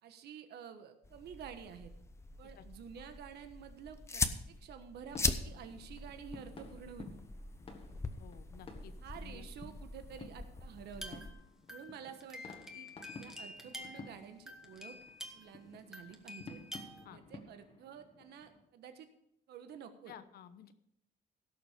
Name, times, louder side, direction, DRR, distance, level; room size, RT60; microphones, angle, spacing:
voice 1, 0.0-1.9 2.4-7.1 9.0-11.2 11.7-12.9 13.2-15.0 15.3-16.6 17.1-19.1 19.5-20.1, right 8 dB, 70° right, 8 dB, 1.3 m, -50 dB
sound 1, 1.0-11.3, left 3 dB, 15° left, 0.7 m, -41 dB
sound 2, 5.1-18.7, left 3 dB, 30° left, 1.6 m, -53 dB
voice 2, 8.2-8.9 9.2-9.5 17.0-17.2 20.1-20.7, left 9 dB, 65° left, 11 dB, 1.0 m, -53 dB
sound 3, 10.9-15.6 15.9-17.1, left 1 dB, 5° right, 1.3 m, -49 dB
16.5 x 6.8 x 5.0 m, 0.75 s
cardioid pair, 150°, 17 cm